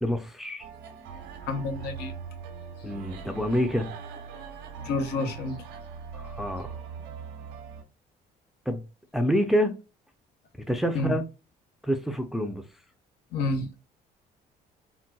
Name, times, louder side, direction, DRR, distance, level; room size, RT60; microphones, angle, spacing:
voice 1, 0.0-0.7 2.8-3.9 6.1-6.7 8.7-8.8 9.1-9.7 10.7-11.2 11.8-12.6, equal, ahead, 0.4 m, -27 dB
sound 1, 0.6-7.8, right 6 dB, 90° right, 0.8 m, -41 dB
voice 2, 1.5-2.1 4.8-5.6 10.9-11.2 13.3-13.7, left 2 dB, 75° left, 0.8 m, -29 dB
3.9 x 2.2 x 2.2 m
cardioid pair, 110°, 17 cm